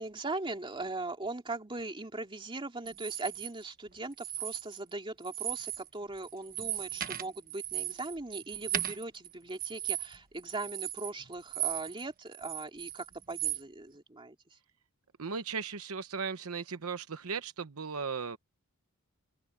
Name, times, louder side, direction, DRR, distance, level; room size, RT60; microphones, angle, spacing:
voice 1, 0.0-14.4, right 2 dB, 25° right, 2.7 m, -40 dB
sound 1, 2.9-3.5 4.1-4.9 5.2-5.9 6.2-12.0 12.3-13.6, right 11 dB, 40° right, 1.2 m, -37 dB
voice 2, 15.2-18.4, right 5 dB, 70° right, 0.9 m, -37 dB
open air
head